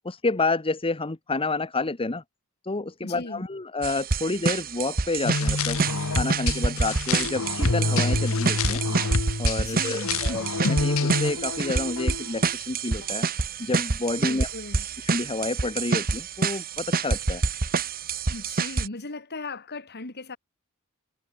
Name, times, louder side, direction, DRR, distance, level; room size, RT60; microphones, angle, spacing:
voice 1, 0.0-2.2 2.6-5.8 6.1-8.8 9.4-13.3 13.6-14.5 15.1-17.4, left 3 dB, 25° left, 1.0 m, -29 dB
voice 2, 3.0-3.4 9.6-10.5 14.2-14.9 18.3-20.4, left 2 dB, 50° left, 2.4 m, -37 dB
sound 1, 3.8-18.9, right 4 dB, 40° right, 1.1 m, -27 dB
sound 2, 5.2-11.3, left 3 dB, 70° left, 1.2 m, -27 dB
sound 3, 5.7-6.7 7.1-9.6 10.0-12.6 13.0-13.1, left 4 dB, 85° left, 0.9 m, -37 dB
head